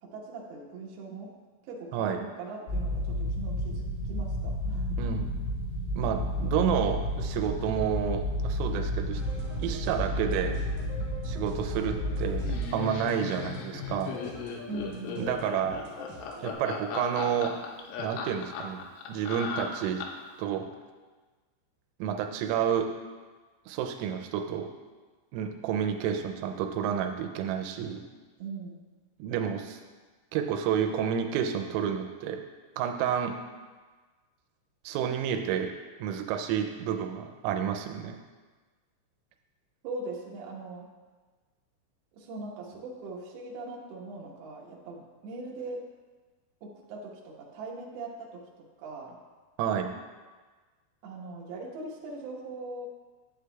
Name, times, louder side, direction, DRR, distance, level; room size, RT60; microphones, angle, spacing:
voice 1, 0.0-1.3 1.7-5.0 14.7-15.5 28.4-28.8 39.8-40.9 42.1-45.8 46.6-49.2 51.0-52.9, right 3 dB, 70° right, -2 dB, 2.6 m, -40 dB
sound 1, 2.7-12.6, left 1 dB, 65° left, 4.3 m, -31 dB
voice 2, 5.0-5.4 6.0-9.2 9.6-10.6 11.2-14.2 15.2-15.8 16.4-17.6 18.0-20.0 20.4-20.7 22.0-22.9 23.7-24.7 25.3-28.0 29.2-29.8 30.3-32.4 32.8-33.3 34.9-35.7 36.0-38.2 49.6-49.9, right 8 dB, 85° right, 5 dB, 3.2 m, -30 dB
sound 2, 9.2-16.5, left 1 dB, 40° right, 2.3 m, -45 dB
Laughter, 12.5-20.3, left 6 dB, 80° left, 3.0 m, -37 dB
11.5 x 8.1 x 2.3 m, 1.4 s
omnidirectional pair, 5.8 m